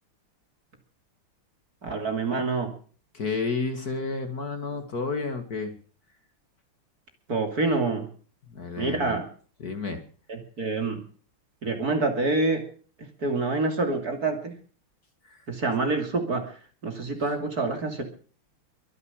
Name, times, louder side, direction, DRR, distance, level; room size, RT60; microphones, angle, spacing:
voice 1, 1.8-2.7 7.3-8.1 8.8-9.2 10.3-11.0 11.6-12.6 13.0-14.5 15.5-16.5 16.8-18.0, right 3 dB, 45° right, 5 dB, 3.2 m, -27 dB
voice 2, 3.1-5.7 8.5-9.2 9.6-10.0 15.2-15.4, left 4 dB, 45° left, 7 dB, 2.3 m, -31 dB
23.0 x 8.2 x 7.4 m, 0.43 s
omnidirectional pair, 2.4 m